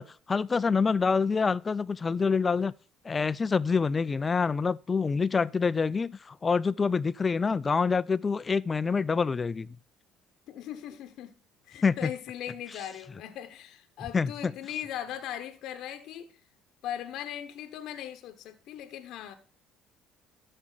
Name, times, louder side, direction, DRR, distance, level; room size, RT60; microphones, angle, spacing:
voice 1, 0.0-2.7 3.0-9.8 11.8-12.1 14.1-14.5, left 5 dB, 30° left, 0.4 m, -26 dB
voice 2, 10.5-11.3 11.6-16.3 16.8-19.3, left 10 dB, 70° left, 1.0 m, -39 dB
13.0 x 4.5 x 3.8 m
supercardioid pair, 70°, 0 cm